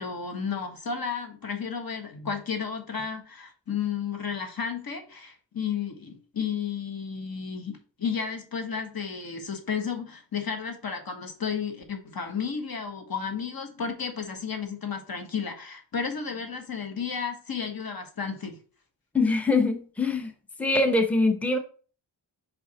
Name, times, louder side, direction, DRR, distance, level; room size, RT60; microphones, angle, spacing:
voice 1, 0.0-18.6, left 6 dB, 50° left, 6 dB, 1.3 m, -32 dB
voice 2, 19.1-20.3 20.6-21.6, left 3 dB, 5° left, 5 dB, 0.9 m, -23 dB
5.1 x 4.6 x 4.2 m, 0.40 s
cardioid pair, 65°, 46 cm